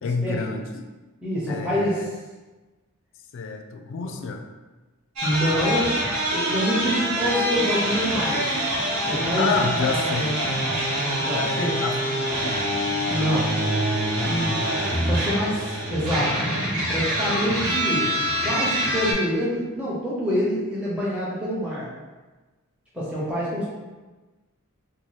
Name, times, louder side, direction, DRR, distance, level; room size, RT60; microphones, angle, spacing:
voice 1, 0.0-0.8 1.5-2.1 3.3-4.5 9.4-10.4 11.3-12.6 14.4-14.7, left 4 dB, 60° left, 5 dB, 0.3 m, -29 dB
voice 2, 1.2-2.1 4.0-4.1 5.2-5.9 6.3-8.5 9.1-9.5 11.2-11.7 13.1-13.5 14.2-14.6 15.1-16.4 16.9-18.1 18.4-21.9 22.9-23.6, equal, 5° right, -9 dB, 0.6 m, -26 dB
sound 1, 5.2-19.1, equal, 85° right, 1.0 m, -25 dB
2.7 x 2.4 x 3.1 m, 1.2 s
head